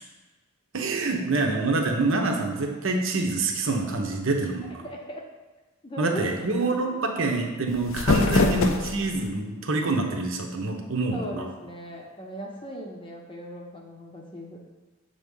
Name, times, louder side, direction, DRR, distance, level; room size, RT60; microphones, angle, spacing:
voice 1, 0.7-4.9 6.0-11.5, right 2 dB, 65° right, 2 dB, 0.9 m, -26 dB
voice 2, 4.8-5.2 5.8-6.3 6.6-7.0 8.2-8.5 11.1-14.6, equal, 25° left, -1 dB, 0.7 m, -38 dB
sound 1, 7.7-9.3, left 3 dB, 65° left, 0.5 m, -24 dB
7.1 x 3.6 x 5.5 m, 1.3 s
head